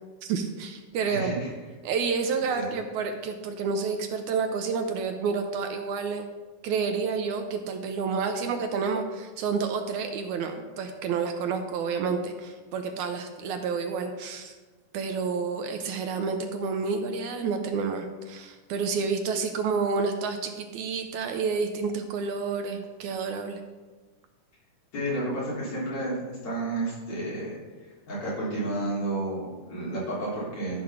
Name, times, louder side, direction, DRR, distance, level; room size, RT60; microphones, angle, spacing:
voice 1, 0.2-1.3 1.8-6.3 6.6-14.5 14.9-23.6, right 5 dB, 75° right, 6 dB, 2.0 m, -29 dB
voice 2, 1.0-1.5 2.5-2.7 24.9-27.6 28.1-30.8, right 1 dB, 60° left, -8 dB, 5.0 m, -31 dB
12.5 x 4.9 x 5.8 m, 1.3 s
omnidirectional pair, 3.6 m